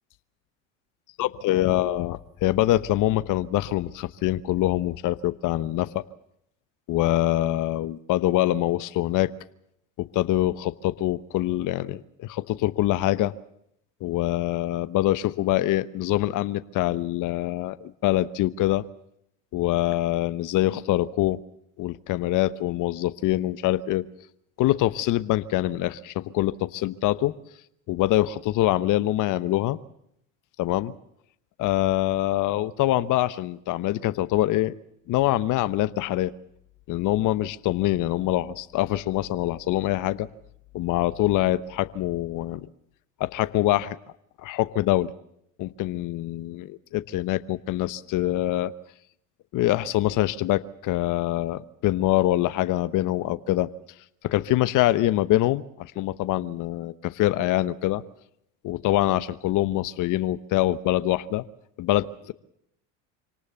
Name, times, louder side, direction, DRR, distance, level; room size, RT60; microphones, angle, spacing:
voice 1, 1.2-6.0 6.9-9.3 10.0-13.3 14.0-18.8 19.5-21.4 21.8-24.0 24.6-27.4 27.9-29.8 30.6-30.9 31.6-34.8 35.1-36.3 36.9-40.3 40.7-42.7 43.2-44.0 44.4-45.1 45.6-48.7 49.5-53.7 54.2-58.0 58.6-61.4 61.8-62.3, left 15 dB, 50° left, 14 dB, 1.0 m, -24 dB
26.0 x 18.5 x 7.0 m, 0.75 s
supercardioid pair, 95°, 39 cm